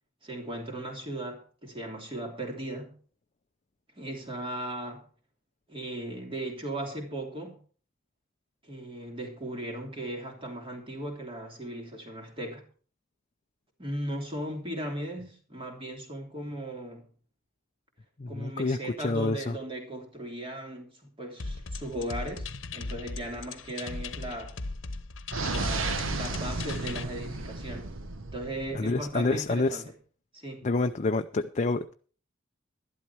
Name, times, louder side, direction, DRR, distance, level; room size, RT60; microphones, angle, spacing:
voice 1, 0.2-3.0 4.0-5.1 5.7-7.6 8.6-12.6 13.8-17.1 18.3-22.5 22.7-24.5 25.5-27.9 28.3-29.9 30.3-30.7, right 1 dB, 25° right, 3.2 m, -37 dB
voice 2, 18.2-18.8 19.0-19.5 28.7-29.8 30.6-31.9, left 3 dB, 35° left, 0.5 m, -28 dB
sound 1, 21.4-27.0, left 3 dB, 70° left, 1.0 m, -38 dB
sound 2, 25.3-29.1, right 3 dB, 90° right, 1.2 m, -33 dB
12.0 x 12.0 x 4.5 m
head